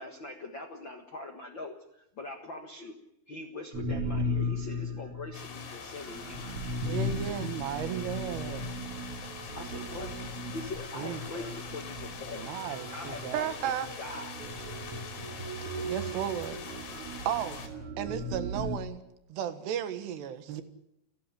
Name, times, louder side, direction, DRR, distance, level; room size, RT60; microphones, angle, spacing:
voice 1, 0.0-2.9 3.3-6.4 9.5-10.1 10.5-12.6 12.9-13.6 14.0-14.4, left 2 dB, 60° left, 1.2 m, -42 dB
sound 1, 3.7-18.8, left 1 dB, 50° right, 2.1 m, -37 dB
sound 2, 5.3-17.7, left 6 dB, 85° left, 5.2 m, -44 dB
voice 2, 6.8-7.6 13.3-13.9 15.7-16.6 17.3-17.6 18.0-19.0 19.3-20.6, right 9 dB, 85° right, 3.6 m, -33 dB
voice 3, 7.4-8.7 10.9-11.5 12.3-13.5 20.5-20.6, right 10 dB, 70° right, 3.4 m, -37 dB
29.5 x 11.5 x 10.0 m
omnidirectional pair, 4.7 m